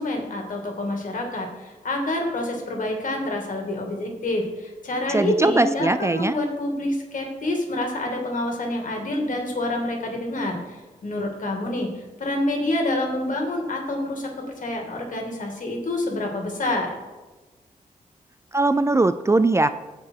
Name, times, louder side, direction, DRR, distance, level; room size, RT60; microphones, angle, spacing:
voice 1, 0.0-11.9 12.2-14.3 14.6-16.9, left 1 dB, 60° left, 2 dB, 2.4 m, -27 dB
voice 2, 5.1-6.4 18.5-19.7, right 2 dB, 20° right, 12 dB, 0.4 m, -20 dB
15.5 x 5.1 x 4.6 m, 1.2 s
wide cardioid pair, 120°, 15 cm